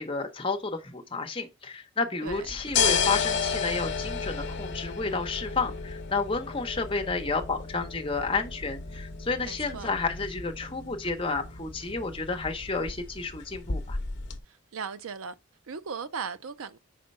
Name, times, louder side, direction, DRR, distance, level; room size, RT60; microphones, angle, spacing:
voice 1, 0.0-14.0, left 4 dB, 25° left, 0.9 m, -31 dB
sound 1, 2.3-14.4, left 5 dB, 55° left, 0.7 m, -33 dB
voice 2, 9.4-9.9 14.5-15.3 15.7-16.8, right 6 dB, 85° right, 0.5 m, -37 dB
5.0 x 4.3 x 5.4 m
head